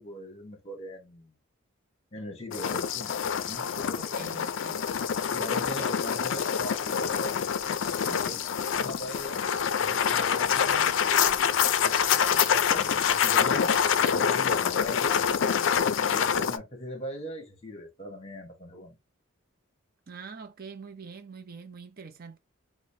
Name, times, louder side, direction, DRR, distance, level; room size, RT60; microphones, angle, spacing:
voice 1, 0.0-1.3 2.1-3.1 3.4-4.3 5.3-7.4 8.3-8.4 8.8-9.4 9.8-13.7 14.1-15.2 16.1-19.0, equal, 30° left, 1.0 m, -40 dB
sound 1, 2.5-16.6, left 7 dB, 60° left, 0.4 m, -26 dB
voice 2, 4.0-4.8 5.8-5.9 8.1-8.4 20.1-22.4, right 5 dB, 45° right, 0.5 m, -44 dB
4.8 x 2.1 x 2.6 m
head